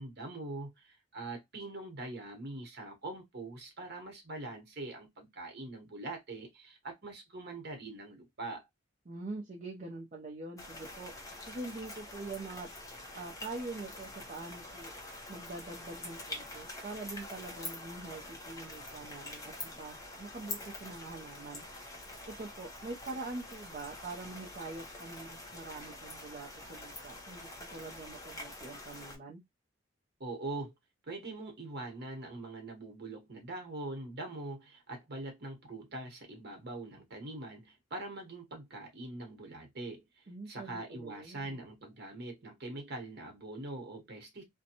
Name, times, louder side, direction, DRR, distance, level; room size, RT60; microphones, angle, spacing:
voice 1, 0.0-8.7 30.2-30.7 31.1-44.4, right 2 dB, 60° right, 1.0 m, -43 dB
voice 2, 9.1-11.1 11.5-12.7 13.1-19.5 19.8-29.4 40.3-41.6, right 3 dB, 40° right, 0.5 m, -44 dB
sound 1, 10.6-29.2, left 2 dB, 20° left, 0.8 m, -46 dB
2.5 x 2.1 x 2.8 m
head